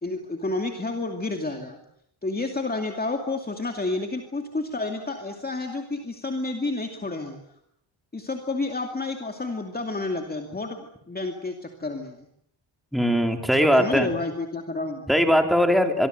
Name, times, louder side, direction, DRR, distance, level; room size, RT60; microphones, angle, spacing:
voice 1, 0.0-1.8 2.2-7.4 8.1-12.2 13.6-15.1, left 2 dB, 20° left, 4 dB, 2.5 m, -30 dB
voice 2, 12.9-14.1 15.1-16.1, equal, ahead, 5 dB, 3.2 m, -20 dB
25.0 x 24.0 x 8.0 m, 0.72 s
wide cardioid pair, 155°, 47 cm